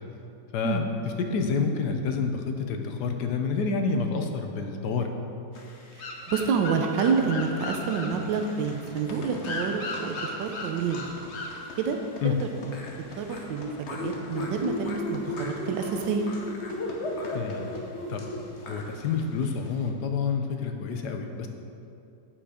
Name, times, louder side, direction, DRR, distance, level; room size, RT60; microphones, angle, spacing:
voice 1, 0.5-0.9 1.2-5.1 12.2-12.4 17.3-17.7 18.1-18.2 18.6-21.5, left 5 dB, 70° left, 5 dB, 1.3 m, -28 dB
sound 1, 5.5-19.9, left 2 dB, 45° left, 1.1 m, -36 dB
voice 2, 6.3-11.1 11.8-12.0 12.2-12.5 13.2-16.3, right 5 dB, 90° right, 4 dB, 1.4 m, -28 dB
9.3 x 7.5 x 4.9 m, 2.7 s
omnidirectional pair, 1.9 m